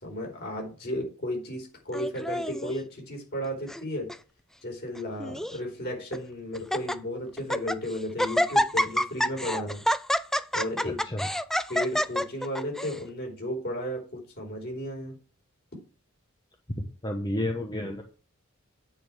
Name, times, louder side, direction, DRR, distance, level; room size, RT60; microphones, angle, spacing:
voice 1, 0.0-4.1 4.6-9.8 10.5-11.0 11.7-15.2, equal, 50° left, 0 dB, 4.7 m, -34 dB
Laughter, 1.9-2.7 3.4-3.8 4.1-4.2 4.9-5.6 6.1-6.2 6.5-7.0 7.4-7.8 8.2-13.0, equal, ahead, 0.4 m, -27 dB
voice 2, 10.8-11.3 17.0-18.0, left 1 dB, 20° left, 2 dB, 1.1 m, -31 dB
8.8 x 5.4 x 6.3 m, 0.36 s
head